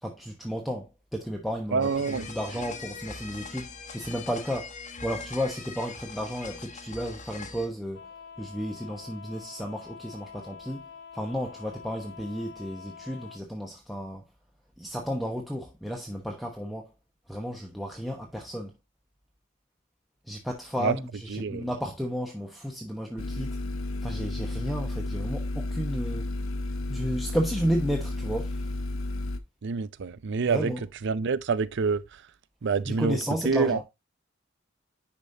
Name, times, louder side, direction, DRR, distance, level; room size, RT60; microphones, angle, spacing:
voice 1, 0.0-4.8 5.0-8.1 8.4-14.2 14.8-16.9 17.3-18.7 20.3-23.6 24.0-26.3 26.9-28.7 30.5-30.8 32.8-33.8, equal, ahead, 1.0 m, -33 dB
voice 2, 1.7-2.3 20.8-21.0 21.3-21.7 29.6-30.7 31.0-32.2 32.6-33.2 33.4-33.8, right 5 dB, 60° right, 0.5 m, -27 dB
sound 1, 1.8-7.7, left 4 dB, 35° left, 1.2 m, -41 dB
sound 2, 7.9-13.4, left 6 dB, 60° left, 0.7 m, -46 dB
sound 3, 23.2-29.4, left 2 dB, 85° left, 0.9 m, -32 dB
10.5 x 5.1 x 2.7 m
head